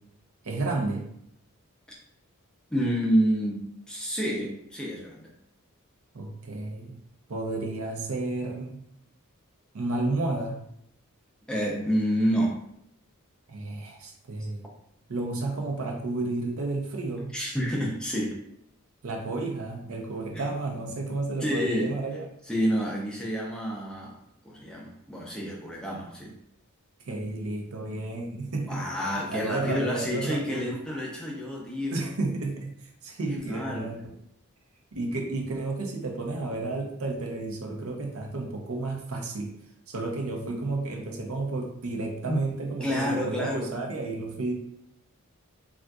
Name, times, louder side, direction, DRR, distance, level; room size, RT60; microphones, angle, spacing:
voice 1, 0.4-1.0 6.1-7.0 7.3-8.8 9.7-10.6 13.5-14.7 15.1-17.3 19.0-22.2 27.0-28.8 29.3-30.7 31.9-32.7 33.0-34.1 34.9-39.5 39.9-44.5, right 2 dB, 70° right, 1 dB, 0.6 m, -32 dB
voice 2, 2.7-3.6 3.9-5.3 11.5-12.6 17.3-18.4 20.3-20.5 21.4-21.9 22.5-24.2 24.4-26.3 28.7-32.0 33.3-33.9 42.3-42.4 42.8-43.7, equal, 5° left, -3 dB, 0.5 m, -28 dB
3.7 x 2.4 x 2.3 m, 0.72 s
head